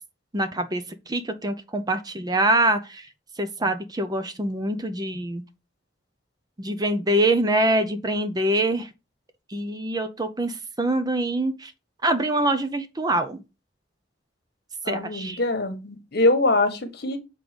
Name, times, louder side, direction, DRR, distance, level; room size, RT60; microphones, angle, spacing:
voice 1, 0.3-3.1 3.4-5.4 6.6-8.9 9.5-11.7 12.0-13.4 14.9-15.4, right 1 dB, 20° right, 0.7 m, -24 dB
voice 2, 14.8-17.2, left 2 dB, 60° left, 1.4 m, -23 dB
7.8 x 3.8 x 5.1 m
head